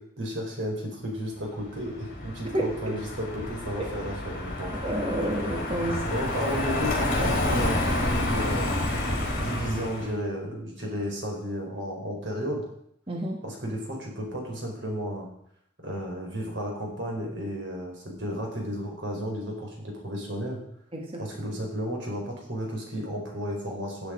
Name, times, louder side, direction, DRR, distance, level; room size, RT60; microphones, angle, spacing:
voice 1, 0.2-4.7 6.1-8.9 9.3-12.6 13.4-15.3 15.8-20.6 21.2-24.1, equal, 80° right, 0 dB, 4.5 m, -33 dB
Car passing by, 1.6-10.1, left 1 dB, 50° left, 4.4 m, -29 dB
voice 2, 2.4-3.0 4.8-6.0 13.1-13.4 20.9-21.2, right 1 dB, 30° right, 1 dB, 1.7 m, -29 dB
16.0 x 8.7 x 5.1 m, 0.72 s
head